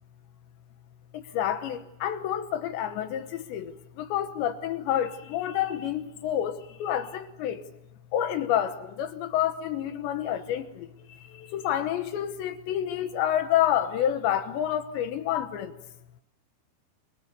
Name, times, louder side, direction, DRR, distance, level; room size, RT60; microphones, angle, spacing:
voice 1, 1.3-3.7 4.0-7.6 8.1-10.7 11.5-15.7, left 10 dB, 75° left, 3.2 m, -28 dB
28.0 x 27.0 x 6.8 m
omnidirectional pair, 5.4 m